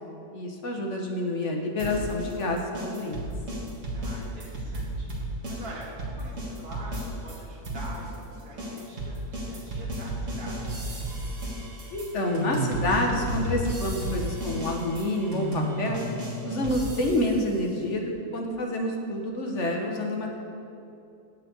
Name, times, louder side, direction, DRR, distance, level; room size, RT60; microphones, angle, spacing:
voice 1, 0.3-3.2 11.9-16.0 16.4-20.4, left 1 dB, 55° left, 1 dB, 1.3 m, -28 dB
sound 1, 1.8-7.4 7.6-17.4, right 1 dB, 55° right, 2.0 m, -33 dB
voice 2, 3.9-11.0, right 1 dB, 75° right, -4 dB, 2.1 m, -45 dB
9.0 x 5.6 x 8.0 m, 2.6 s
omnidirectional pair, 1.6 m